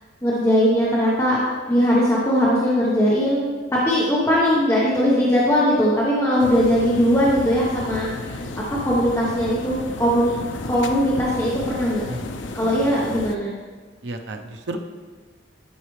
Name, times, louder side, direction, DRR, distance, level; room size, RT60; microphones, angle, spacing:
voice 1, 0.2-8.1 8.7-10.3 10.6-12.1 12.5-13.5, equal, 15° left, -7 dB, 1.0 m, -20 dB
sound 1, 6.4-13.4, left 3 dB, 75° left, 0.5 m, -33 dB
voice 2, 14.0-14.8, right 2 dB, 65° right, 5 dB, 0.6 m, -32 dB
11.0 x 5.8 x 3.2 m, 1.4 s
head